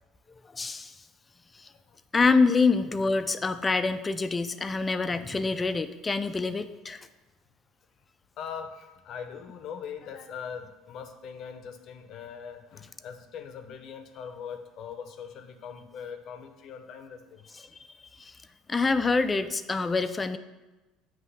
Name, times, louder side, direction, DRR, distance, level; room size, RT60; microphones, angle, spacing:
voice 1, 0.5-0.9 1.6-1.7 2.1-7.1 18.2-18.4 18.7-20.4, left 4 dB, 20° left, 10 dB, 0.4 m, -26 dB
voice 2, 8.4-17.5, left 7 dB, 55° left, 8 dB, 0.7 m, -41 dB
8.0 x 3.1 x 5.6 m, 1.1 s
supercardioid pair, 100°, 0 cm